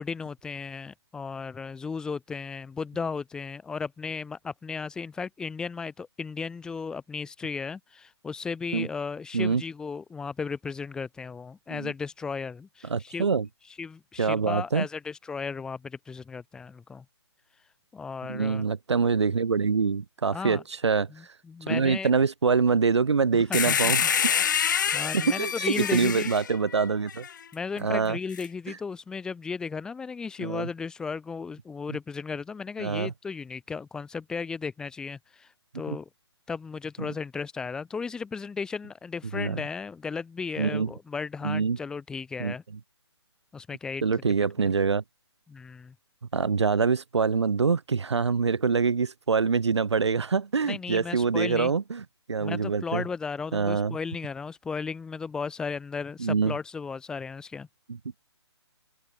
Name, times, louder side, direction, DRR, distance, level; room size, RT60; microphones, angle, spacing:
voice 1, 0.0-13.3 13.8-17.0 17.9-18.7 20.3-20.6 21.1-22.1 23.3-24.1 24.9-26.3 27.5-36.1 36.5-42.6 43.5-44.0 45.5-45.9 50.6-51.7 52.4-57.7, left 5 dB, 5° left, 7.6 m, -35 dB
voice 2, 12.8-13.5 14.2-14.9 18.3-21.1 21.7-24.4 25.1-27.3 27.8-28.2 28.7-28.8 30.4-30.7 32.8-33.1 35.9-36.0 39.3-39.6 40.6-40.9 41.4-41.8 42.4-42.5 44.0-45.0 46.3-53.0 53.5-54.0 56.2-56.5, right 5 dB, 75° right, 4.0 m, -25 dB
sound 1, 23.5-27.3 28.3-28.5, left 8 dB, 40° left, 2.5 m, -27 dB
open air
hypercardioid pair, 170°, 15 cm